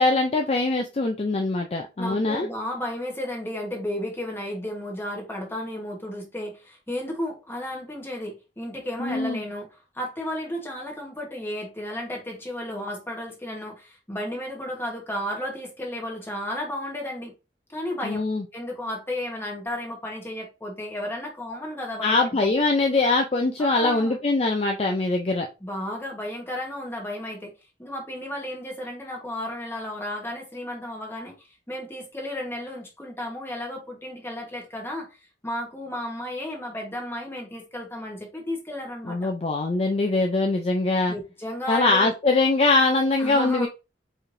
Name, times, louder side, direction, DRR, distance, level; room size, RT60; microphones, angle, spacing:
voice 1, 0.0-2.5 9.0-9.4 18.0-18.4 22.0-25.5 39.1-41.1 41.7-43.7, left 3 dB, 35° left, 0.4 m, -22 dB
voice 2, 2.0-17.3 17.7-18.2 18.5-22.5 23.6-24.2 25.6-27.5 27.8-35.2 35.4-39.3 41.1-42.1 43.2-43.7, left 1 dB, 15° left, 1.2 m, -33 dB
4.6 x 3.2 x 2.6 m
head